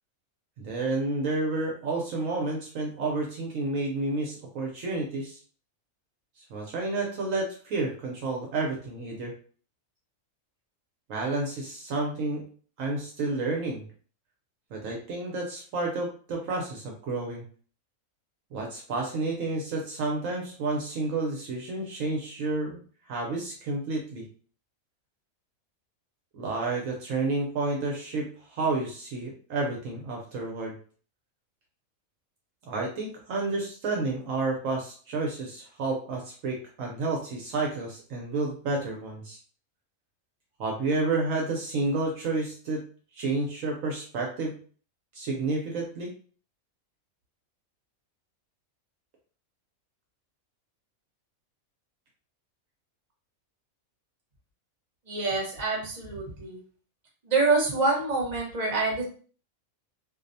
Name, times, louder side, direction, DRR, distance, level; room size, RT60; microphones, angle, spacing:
voice 1, 0.6-5.4 6.5-9.3 11.1-12.4 12.8-13.8 14.7-17.4 18.5-24.2 26.3-30.7 32.7-39.4 40.6-42.8 43.1-44.6 45.1-46.1, right 3 dB, 70° right, -1 dB, 0.9 m, -30 dB
voice 2, 55.1-56.6 57.2-59.0, right 3 dB, 35° right, -3 dB, 0.8 m, -26 dB
2.6 x 2.0 x 2.6 m, 0.43 s
omnidirectional pair, 1.5 m